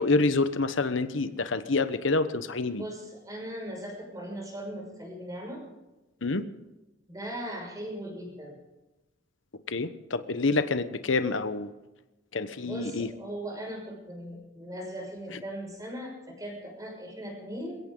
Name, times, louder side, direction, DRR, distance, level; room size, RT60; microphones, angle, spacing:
voice 1, 0.0-2.8 6.2-6.4 9.7-11.7 12.3-13.1 15.3-15.4, left 3 dB, 85° left, 11 dB, 1.1 m, -27 dB
voice 2, 2.8-5.6 7.1-8.6 12.6-17.8, equal, 20° right, 0 dB, 6.0 m, -39 dB
22.0 x 17.0 x 3.9 m, 1.0 s
head